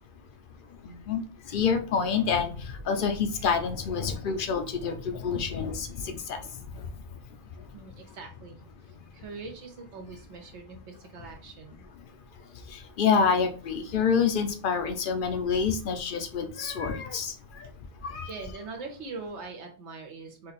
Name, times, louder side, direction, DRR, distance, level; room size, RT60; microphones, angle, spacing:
voice 1, 0.8-1.2 1.5-6.4 6.7-6.9 12.7-17.7 18.0-18.3, left 6 dB, 55° left, 7 dB, 0.7 m, -27 dB
voice 2, 7.7-8.6 9.1-11.9 15.9-16.0 18.2-20.5, right 4 dB, 75° right, 3 dB, 1.1 m, -42 dB
3.8 x 2.8 x 4.1 m, 0.39 s
omnidirectional pair, 1.2 m